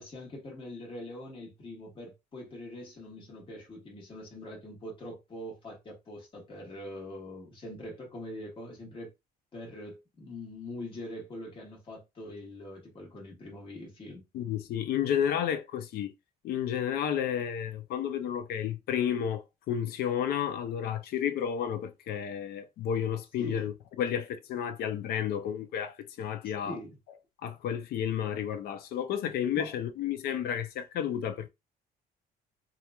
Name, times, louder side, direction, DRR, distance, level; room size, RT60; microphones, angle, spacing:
voice 1, 0.0-9.1 9.5-14.2 23.4-23.6 26.4-27.0 29.5-29.8, left 1 dB, 30° left, 1.2 m, -43 dB
voice 2, 14.3-16.1 16.4-26.8 27.4-31.5, left 9 dB, 65° left, 0.5 m, -31 dB
2.8 x 2.4 x 2.2 m
cardioid pair, 110°, 17 cm